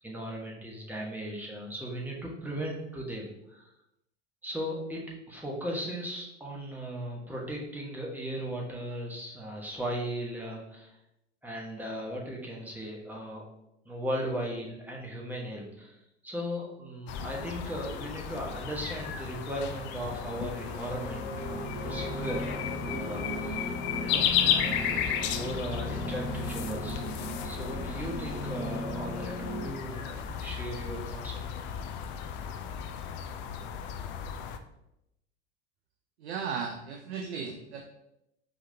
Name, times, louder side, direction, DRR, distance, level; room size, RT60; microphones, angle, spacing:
voice 1, 0.0-3.7 4.4-10.9 11.4-13.4 13.8-16.0 16.2-23.7 24.0-31.6, equal, 5° right, -2 dB, 1.1 m, -37 dB
sound 1, 17.1-34.6, left 8 dB, 35° left, 0.4 m, -34 dB
sound 2, 20.1-29.7, equal, 25° right, 0.9 m, -37 dB
voice 2, 36.2-37.8, right 6 dB, 70° right, 4 dB, 0.5 m, -35 dB
4.6 x 3.9 x 2.7 m, 0.85 s
figure-of-eight pair, 75°, 34 cm